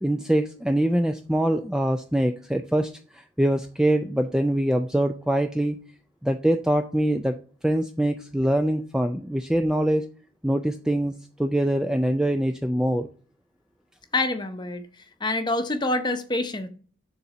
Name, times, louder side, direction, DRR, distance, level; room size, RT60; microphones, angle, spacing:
voice 1, 0.0-5.8 6.2-7.4 7.6-10.1 10.4-11.1 11.4-13.1, right 1 dB, 5° right, 0.3 m, -24 dB
voice 2, 14.1-14.8 15.2-16.7, left 2 dB, 20° left, 0.7 m, -26 dB
7.0 x 3.9 x 5.8 m
head